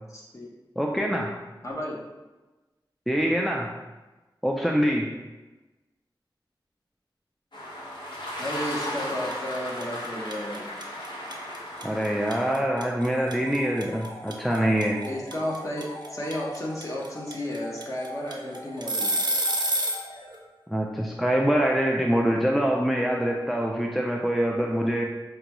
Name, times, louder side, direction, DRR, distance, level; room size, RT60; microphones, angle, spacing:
voice 1, 0.1-0.5 1.6-2.0 8.4-10.7 15.0-15.9 16.1-19.2, left 1 dB, 40° left, -3 dB, 0.9 m, -33 dB
voice 2, 0.8-1.3 3.1-3.7 4.4-5.1 11.8-15.0 20.7-25.0, equal, ahead, 0 dB, 0.4 m, -24 dB
sound 1, 7.5-12.5, equal, 65° left, 1.1 m, -35 dB
sound 2, 8.8-9.1 9.3-20.1, right 1 dB, 60° right, 0.5 m, -28 dB
sound 3, 13.0-20.8, left 1 dB, 80° left, 0.6 m, -44 dB
4.9 x 2.3 x 2.9 m, 1.1 s
wide cardioid pair, 55°, 8 cm